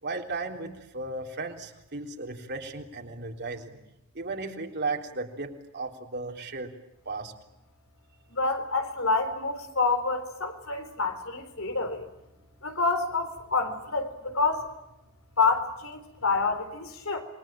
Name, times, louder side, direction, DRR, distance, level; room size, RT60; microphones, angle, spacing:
voice 1, 0.0-3.8 4.1-6.7 7.1-7.3, right 3 dB, 50° right, 2 dB, 3.7 m, -35 dB
voice 2, 8.3-12.1 12.6-14.7 15.4-17.2, left 4 dB, 65° left, 8 dB, 4.2 m, -28 dB
28.5 x 23.0 x 9.1 m, 0.91 s
head